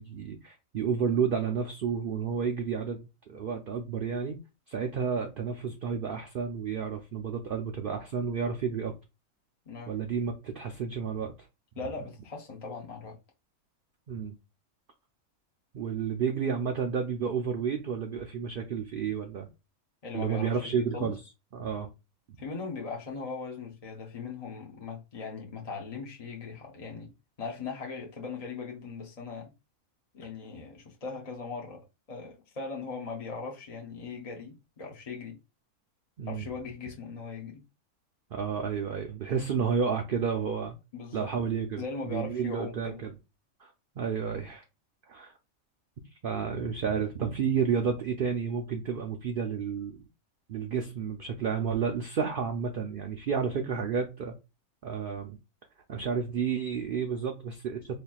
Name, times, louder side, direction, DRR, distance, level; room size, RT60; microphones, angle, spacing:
voice 1, 0.0-4.4 4.7-8.9 9.9-11.3 14.1-14.3 15.7-19.5 20.1-21.2 21.5-21.9 36.2-36.5 38.3-40.8 41.1-43.1 43.6-43.7 44.0-44.6 45.1-45.3 46.2-50.0 50.5-54.3 54.8-55.4 55.9-58.0, right 6 dB, 80° right, 0.5 m, -31 dB
voice 2, 9.7-10.0 11.8-13.2 20.0-21.1 22.4-27.1 27.4-29.5 30.1-35.4 36.3-37.6 40.9-41.3 41.8-43.0, left 4 dB, 40° left, 0.5 m, -39 dB
4.2 x 2.9 x 2.3 m
omnidirectional pair, 1.5 m